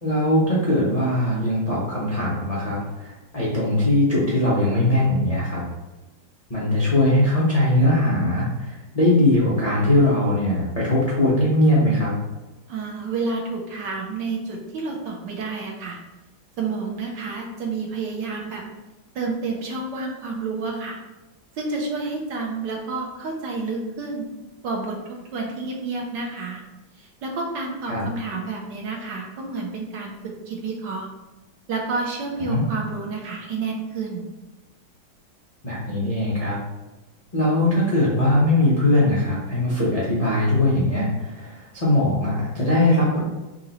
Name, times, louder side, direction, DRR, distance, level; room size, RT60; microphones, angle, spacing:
voice 1, 0.0-5.6 6.5-12.1 27.9-28.0 32.5-32.6 35.6-36.6 37.3-43.2, left 1 dB, 75° left, -7 dB, 0.3 m, -20 dB
voice 2, 12.7-16.0 16.6-18.6 19.1-21.0 21.5-24.3 24.6-26.6 27.0-31.1 31.7-34.2, right 3 dB, 65° right, -1 dB, 1.3 m, -30 dB
3.8 x 3.1 x 4.0 m, 1.1 s
omnidirectional pair, 2.2 m